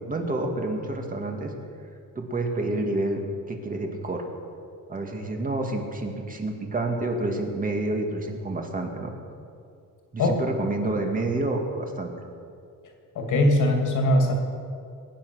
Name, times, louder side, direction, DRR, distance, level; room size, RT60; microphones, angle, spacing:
voice 1, 0.0-1.5 2.2-3.2 3.5-4.2 4.9-9.1 10.1-12.1, right 2 dB, 25° right, 2 dB, 2.1 m, -28 dB
voice 2, 13.1-14.3, left 1 dB, 65° left, 2 dB, 2.8 m, -21 dB
22.0 x 10.0 x 6.4 m, 2.4 s
cardioid pair, 155°, 32 cm